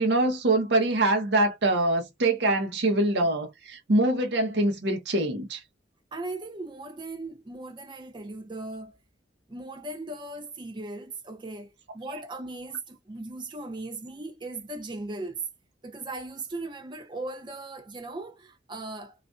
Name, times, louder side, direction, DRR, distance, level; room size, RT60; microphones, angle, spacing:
voice 1, 0.0-5.6 12.1-12.2, right 2 dB, 65° right, 0.7 m, -24 dB
voice 2, 6.1-9.0 9.5-15.4 15.8-19.1, right 2 dB, 25° right, 0.5 m, -38 dB
2.4 x 2.2 x 2.4 m
head